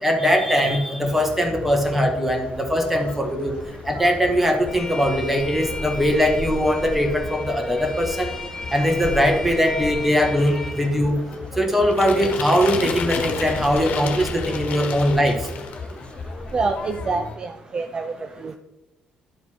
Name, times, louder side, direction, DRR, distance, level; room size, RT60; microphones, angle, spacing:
voice 1, 0.0-3.5 3.8-8.3 8.7-11.2 11.5-15.5, equal, 10° right, 3 dB, 1.7 m, -21 dB
Conversation, 1.0-17.4, left 3 dB, 40° left, 0.8 m, -36 dB
Bowed string instrument, 4.7-10.9, left 3 dB, 10° left, 1.6 m, -35 dB
sound 1, 11.9-15.9, left 6 dB, 70° left, 1.3 m, -31 dB
voice 2, 16.5-18.1 18.4-18.6, right 4 dB, 30° right, 7 dB, 0.5 m, -26 dB
12.0 x 4.0 x 4.6 m, 0.95 s
cardioid pair, 105°, 3 cm